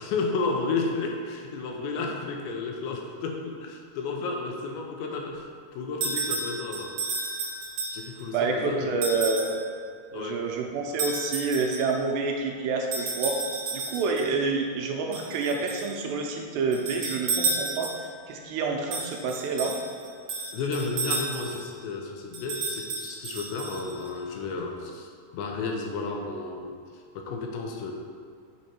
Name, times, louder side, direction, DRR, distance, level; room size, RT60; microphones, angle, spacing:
voice 1, 0.0-7.0 7.9-8.9 10.1-10.4 20.5-25.1 25.3-26.7 27.1-27.9, left 4 dB, 85° left, 1 dB, 3.1 m, -32 dB
sound 1, 6.0-8.2 9.0-9.6 11.0-12.0 12.9-14.3 15.1-15.9 16.7-18.2 18.9-21.7 22.3-24.1, right 4 dB, 60° right, 2.5 m, -32 dB
voice 2, 8.3-9.5 10.1-13.4 13.7-19.8, right 4 dB, 80° right, 1 dB, 2.7 m, -28 dB
6.7 x 6.2 x 4.3 m, 2.3 s
omnidirectional pair, 5.0 m